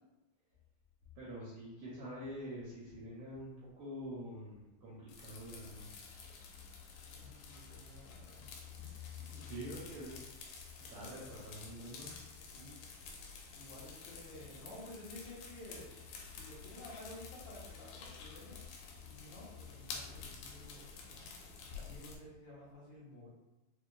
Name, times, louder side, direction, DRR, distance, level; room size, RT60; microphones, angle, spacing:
voice 1, 1.2-6.0 9.3-10.1 10.9-12.1, equal, 75° right, -7 dB, 1.7 m, -46 dB
sound 1, 5.1-22.2, left 5 dB, 80° left, 2.1 m, -50 dB
voice 2, 7.1-8.9 9.5-9.9 12.5-12.8 13.5-18.6 19.0-23.3, left 1 dB, 65° left, -9 dB, 2.2 m, -53 dB
6.1 x 2.5 x 2.2 m, 0.99 s
omnidirectional pair, 4.1 m